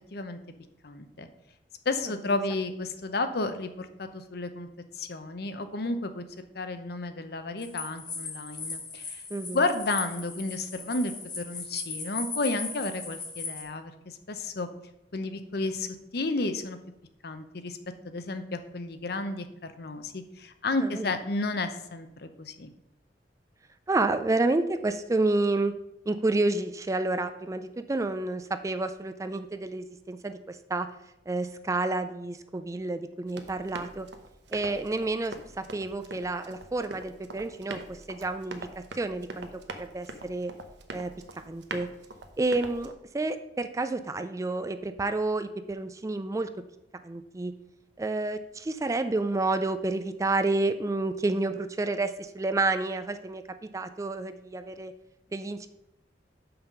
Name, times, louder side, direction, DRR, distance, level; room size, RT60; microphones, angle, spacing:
voice 1, 0.8-1.3 1.8-4.7 4.9-6.2 6.5-9.2 9.5-14.7 15.1-15.9 16.1-16.8 17.2-17.8 18.0-22.7, left 2 dB, 60° left, 9 dB, 0.8 m, -32 dB
sound 1, 7.6-13.6, left 4 dB, 25° left, 1.2 m, -38 dB
voice 2, 23.9-25.7 26.1-30.9 31.3-34.1 34.5-38.7 38.9-39.5 39.8-40.5 40.9-41.1 41.4-41.9 42.4-46.5 47.0-47.5 48.0-53.4 53.7-54.9 55.3-55.7, right 2 dB, 20° right, 10 dB, 0.3 m, -29 dB
Run, 33.3-42.9, right 2 dB, 75° right, 0.8 m, -43 dB
5.8 x 5.5 x 6.7 m, 0.88 s
head